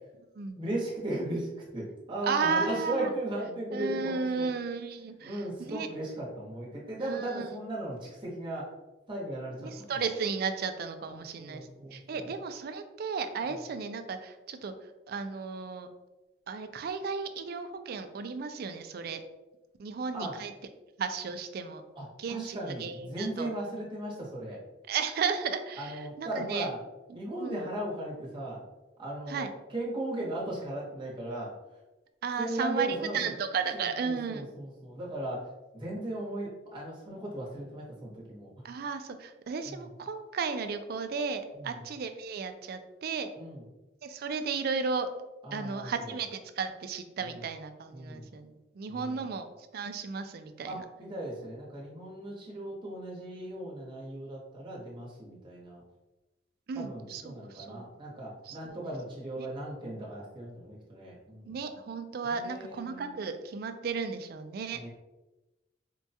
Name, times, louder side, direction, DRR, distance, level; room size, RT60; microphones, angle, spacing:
voice 1, 0.6-4.5 5.2-8.7 9.1-9.9 11.1-12.3 13.4-13.5 20.1-20.4 22.0-24.6 25.8-26.8 27.1-28.6 29.0-31.5 32.4-33.4 33.7-35.5 35.7-38.5 39.6-39.9 41.5-41.8 43.4-43.6 45.4-46.2 47.2-47.4 47.9-48.3 48.9-49.3 50.6-55.8 56.7-61.6 62.2-63.2 64.7-64.9, right 1 dB, 25° right, -4 dB, 1.0 m, -37 dB
voice 2, 2.3-3.1 3.7-5.9 7.0-7.5 9.6-14.7 15.1-15.9 16.5-19.2 19.8-20.5 21.0-21.8 22.2-23.5 24.9-26.7 27.1-27.6 29.3-29.5 32.2-34.5 38.6-43.3 44.0-45.1 45.5-50.8 56.7-57.9 58.5-58.8 59.4-59.5 61.5-64.8, right 5 dB, 55° right, 9 dB, 0.3 m, -34 dB
4.5 x 2.2 x 2.7 m, 1.0 s
head